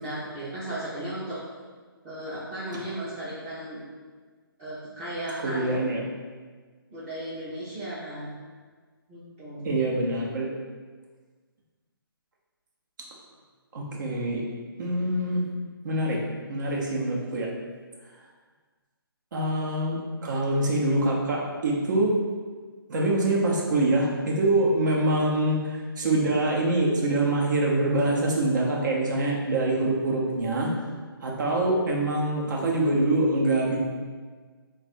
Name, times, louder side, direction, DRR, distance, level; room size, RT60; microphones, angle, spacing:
voice 1, 0.0-1.4 2.0-3.8 4.6-5.6 6.9-8.4 9.1-9.7, right 1 dB, 20° right, -10 dB, 0.8 m, -35 dB
voice 2, 5.4-6.0 9.6-10.5 13.7-14.4 14.8-15.4 15.8-16.2 16.5-17.5 19.3-22.2 22.9-30.7 31.2-33.8, right 2 dB, 50° right, -2 dB, 0.9 m, -25 dB
3.6 x 2.5 x 4.1 m, 1.5 s
hypercardioid pair, 150°, 13 cm